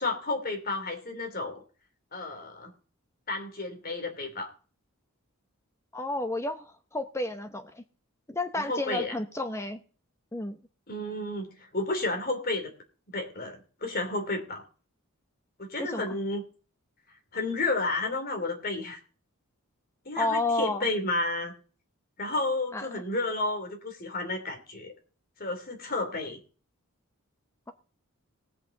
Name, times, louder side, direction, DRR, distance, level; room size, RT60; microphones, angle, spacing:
voice 1, 0.0-1.6 2.1-2.7 3.3-4.5 8.7-9.1 10.9-12.7 13.1-14.6 15.6-16.4 17.3-19.0 20.0-21.5 22.2-24.9 25.4-26.4, left 2 dB, 40° left, 3 dB, 3.0 m, -31 dB
voice 2, 5.9-7.8 8.3-9.8 10.3-10.6 15.8-16.0 20.2-20.9 22.7-23.0, left 2 dB, 10° left, 8 dB, 0.7 m, -31 dB
18.5 x 8.7 x 3.9 m, 0.39 s
head